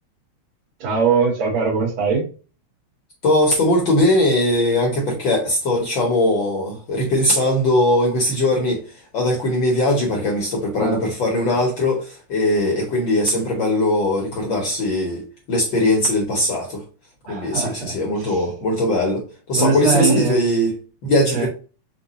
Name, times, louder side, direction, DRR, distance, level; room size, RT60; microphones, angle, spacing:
voice 1, 0.8-2.3 10.8-11.0 17.2-18.4 19.5-20.4 21.3-21.5, right 5 dB, 65° right, 2.4 m, -21 dB
voice 2, 3.2-15.2 15.5-16.8 17.3-20.7 21.0-21.5, left 1 dB, 70° left, 1.1 m, -20 dB
5.2 x 2.2 x 3.9 m
omnidirectional pair, 3.4 m